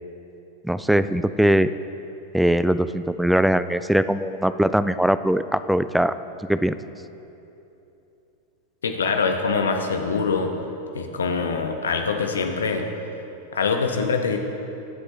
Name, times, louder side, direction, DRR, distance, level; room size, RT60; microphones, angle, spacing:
voice 1, 0.6-1.7 2.3-6.1 6.5-6.7, right 1 dB, ahead, 13 dB, 0.3 m, -21 dB
voice 2, 8.8-10.5 10.9-12.8 13.5-14.4, left 5 dB, 70° left, 5 dB, 1.0 m, -24 dB
21.0 x 7.8 x 3.1 m, 2.9 s
figure-of-eight pair, 90°, 0 cm